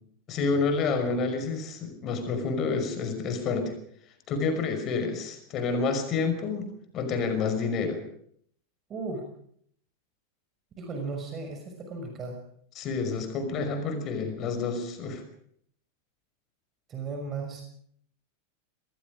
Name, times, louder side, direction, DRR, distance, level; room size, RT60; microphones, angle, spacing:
voice 1, 0.3-3.7 4.3-8.0 12.8-15.2, left 4 dB, 35° left, 7 dB, 5.7 m, -29 dB
voice 2, 8.9-9.2 10.8-12.4 16.9-17.6, right 4 dB, 25° right, 4 dB, 5.9 m, -35 dB
27.0 x 20.5 x 5.1 m, 0.64 s
figure-of-eight pair, 90°, 0 cm